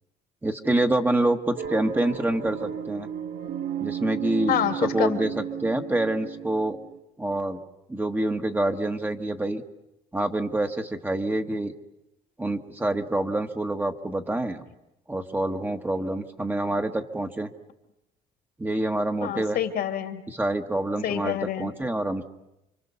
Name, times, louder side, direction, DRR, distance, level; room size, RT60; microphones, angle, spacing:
voice 1, 0.4-3.1 3.8-4.6 4.9-5.3 5.6-6.8 7.2-7.6 7.9-9.6 10.1-11.7 12.4-14.6 15.1-17.5 18.6-19.6 20.3-22.2, right 1 dB, 10° right, 5 dB, 1.4 m, -26 dB
sound 1, 1.6-7.0, right 9 dB, 65° right, 1.4 m, -34 dB
voice 2, 4.5-5.5 19.2-20.2 21.0-21.7, left 10 dB, 65° left, 7 dB, 2.6 m, -28 dB
29.0 x 24.0 x 6.9 m, 0.90 s
cardioid pair, 110°, 17 cm